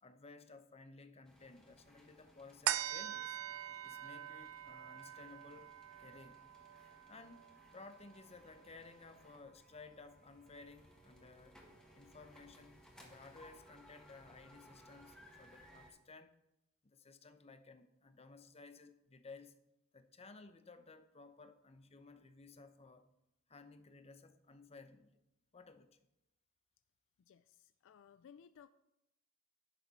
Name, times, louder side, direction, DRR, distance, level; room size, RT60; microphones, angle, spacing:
voice 1, 0.0-3.4 3.8-5.7 6.0-6.5 7.1-7.5 7.7-11.6 11.9-16.3 16.8-19.6 19.9-23.1 23.5-25.2 25.5-26.0, left 3 dB, 30° left, 9 dB, 0.7 m, -57 dB
sound 1, 1.2-15.9, equal, 5° left, 1.7 m, -63 dB
sound 2, 2.7-9.4 9.9-10.0, right 12 dB, 80° right, 0.4 m, -44 dB
voice 2, 27.3-28.7, left 7 dB, 65° left, 13 dB, 0.3 m, -60 dB
11.5 x 7.2 x 4.1 m, 0.85 s
head